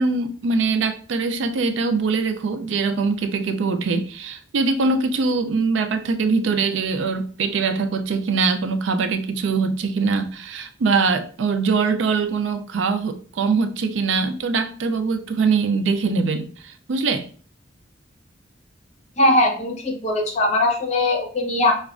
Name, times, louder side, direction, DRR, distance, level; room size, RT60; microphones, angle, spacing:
voice 1, 0.0-17.3, right 4 dB, 70° right, 8 dB, 0.4 m, -22 dB
voice 2, 19.2-21.7, left 1 dB, 35° left, 3 dB, 0.6 m, -20 dB
4.9 x 2.1 x 2.4 m, 0.42 s
head